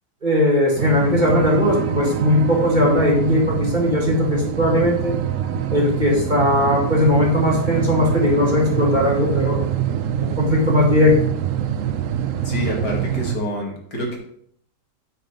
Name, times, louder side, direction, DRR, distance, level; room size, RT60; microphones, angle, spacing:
voice 1, 0.2-5.1 5.7-9.6 10.2-11.1, left 1 dB, 25° right, -3 dB, 1.9 m, -18 dB
sound 1, 0.7-13.4, right 9 dB, 70° right, 0.7 m, -25 dB
voice 2, 12.4-14.2, left 1 dB, 60° left, 0 dB, 2.6 m, -27 dB
9.6 x 5.6 x 5.3 m, 0.68 s
omnidirectional pair, 2.1 m